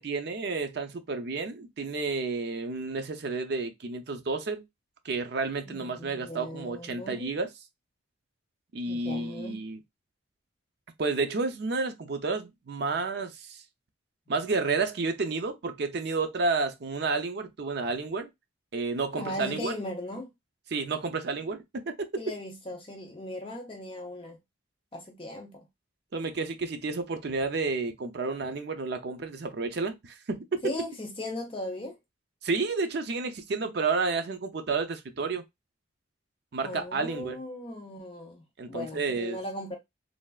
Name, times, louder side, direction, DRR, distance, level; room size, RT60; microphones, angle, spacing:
voice 1, 0.0-4.6 5.0-7.5 8.7-9.8 11.0-13.6 14.3-18.3 18.7-19.8 20.7-22.1 26.1-30.6 32.4-35.4 36.5-37.4 38.6-39.4, right 4 dB, 55° right, 0.5 m, -31 dB
voice 2, 5.7-7.3 8.8-9.6 19.1-20.3 22.2-24.4 24.9-25.6 30.6-32.0 36.6-39.8, left 1 dB, 25° left, 0.5 m, -38 dB
3.2 x 2.3 x 2.3 m
head